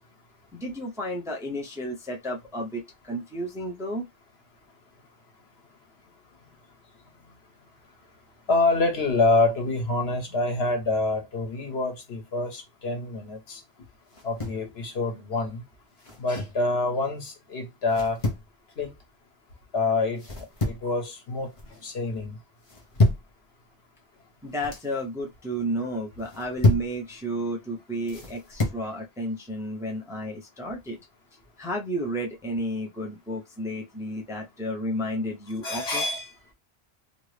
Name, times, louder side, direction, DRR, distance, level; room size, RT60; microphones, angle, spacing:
voice 1, 0.5-4.1 24.4-31.0 31.6-36.0, equal, 5° right, 0.5 m, -32 dB
voice 2, 8.5-13.6 14.2-15.6 16.2-18.2 18.8-18.9 19.7-20.2 20.7-21.5 21.8-22.4 35.6-36.3, left 3 dB, 85° left, 1.2 m, -26 dB
sound 1, 14.1-14.7 16.0-16.6 17.9-18.5 20.2-20.9 21.3-21.8 22.6-23.3 24.4-24.9 26.2-26.9 28.1-28.8, left 2 dB, 35° left, 0.9 m, -27 dB
2.9 x 2.5 x 3.2 m
omnidirectional pair, 1.0 m